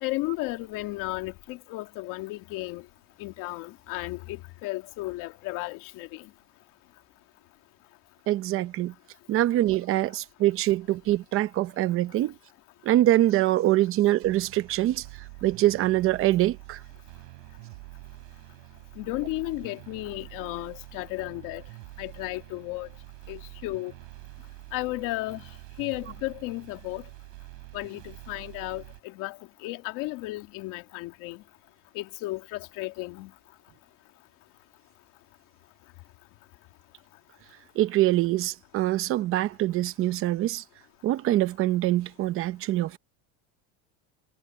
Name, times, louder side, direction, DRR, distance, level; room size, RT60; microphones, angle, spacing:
voice 1, 0.0-2.8 3.2-6.2 19.0-21.6 22.0-22.9 23.3-23.9 24.7-25.4 25.8-27.0 27.7-29.4 29.6-31.4 32.0-33.3, left 20 dB, 55° left, 2.2 m, -34 dB
voice 2, 8.3-8.9 9.3-12.3 12.8-15.0 15.4-16.8 37.8-40.6 41.0-43.0, right 14 dB, 35° right, 0.8 m, -24 dB
sound 1, 14.2-29.0, right 34 dB, 70° right, 5.7 m, -46 dB
cardioid pair, 165°, 40 cm